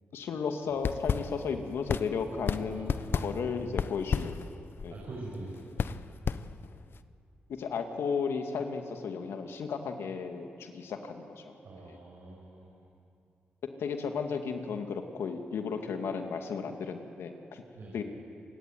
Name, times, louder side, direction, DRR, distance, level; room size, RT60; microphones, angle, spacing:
voice 1, 0.1-4.4 4.8-5.0 7.5-11.5 11.9-12.0 13.8-17.6 17.9-18.0, left 5 dB, 80° left, 5 dB, 2.4 m, -34 dB
sound 1, 0.7-7.0, left 6 dB, 60° left, 0.9 m, -34 dB
voice 2, 2.7-3.9 4.9-6.0 11.6-12.9 17.7-18.0, right 2 dB, 70° right, -3 dB, 5.9 m, -45 dB
27.5 x 17.0 x 9.5 m, 2.4 s
supercardioid pair, 45°, 4 cm